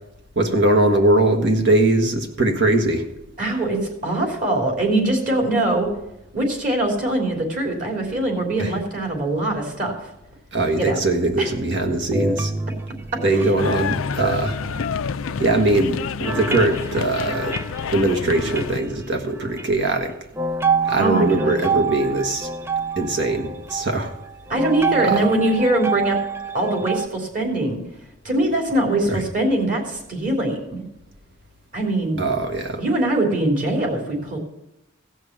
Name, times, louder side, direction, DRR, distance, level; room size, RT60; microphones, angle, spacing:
voice 1, 0.3-3.1 8.6-8.7 10.5-12.5 13.2-14.6 15.4-17.6 17.9-20.2 20.9-22.5 23.0-24.1 25.0-25.2 29.1-29.2 32.2-32.8, right 2 dB, 55° right, 4 dB, 1.4 m, -21 dB
voice 2, 3.4-5.9 6.3-9.9 10.8-11.0 11.4-11.5 13.3-13.4 21.0-21.6 24.5-26.2 26.5-27.8 28.2-30.8 31.7-32.2 32.8-34.4, right 1 dB, 40° right, 1 dB, 3.2 m, -22 dB
sound 1, 11.7-15.6 16.2-18.8 19.3-19.7 20.4-27.1, right 4 dB, 10° right, 0.3 m, -27 dB
sound 2, 13.6-18.8, left 6 dB, 75° left, 0.5 m, -28 dB
16.0 x 6.4 x 7.3 m, 0.87 s
head